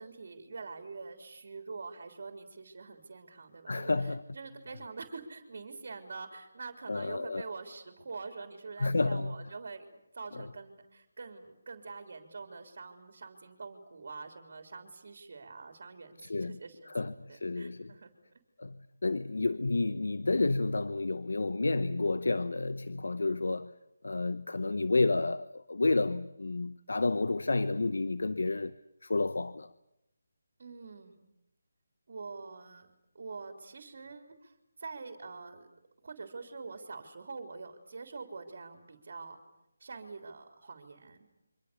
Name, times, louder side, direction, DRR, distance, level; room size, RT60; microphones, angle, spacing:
voice 1, 0.0-9.9 10.1-18.1 30.6-31.2 32.1-34.5 34.8-35.7 36.0-39.4 39.8-41.2, right 4 dB, 50° right, 3.5 m, -45 dB
voice 2, 3.7-4.2 6.9-7.4 8.8-9.3 16.2-16.5 16.9-17.9 18.6-18.7 19.0-23.7 24.0-28.7 29.0-29.7, left 3 dB, 80° left, 0.9 m, -30 dB
28.0 x 25.0 x 6.9 m
figure-of-eight pair, 170°, 0 cm